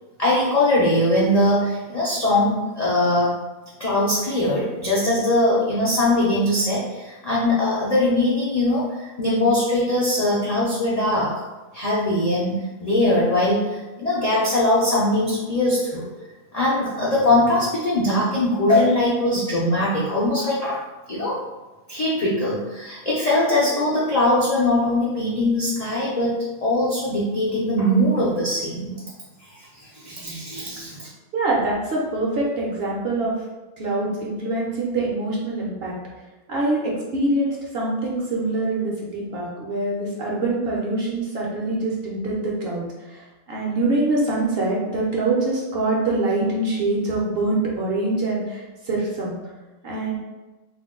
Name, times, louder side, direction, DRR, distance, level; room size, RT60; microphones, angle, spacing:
voice 1, 0.2-3.3 3.8-11.4 11.7-16.0 16.5-21.4 21.9-26.3 26.6-28.9 29.4-31.1, left 1 dB, 75° left, -7 dB, 0.3 m, -21 dB
voice 2, 31.3-33.3 33.8-35.9 36.5-42.8 43.1-49.3 49.8-50.2, right 2 dB, 60° right, -4 dB, 0.7 m, -24 dB
2.5 x 2.1 x 3.6 m, 1.2 s
omnidirectional pair, 1.4 m